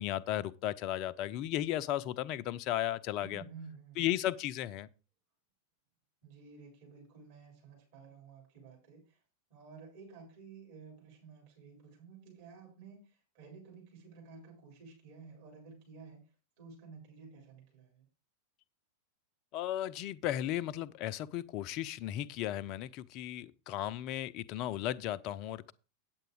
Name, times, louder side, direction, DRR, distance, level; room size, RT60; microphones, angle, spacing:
voice 1, 0.0-3.4 4.0-4.9 19.5-25.7, left 12 dB, 40° left, 0.5 m, -35 dB
voice 2, 3.2-4.1 6.2-9.2 9.5-16.3 16.6-18.1, right 5 dB, 50° right, 4.6 m, -53 dB
9.0 x 7.9 x 4.6 m
figure-of-eight pair, 90°, 0 cm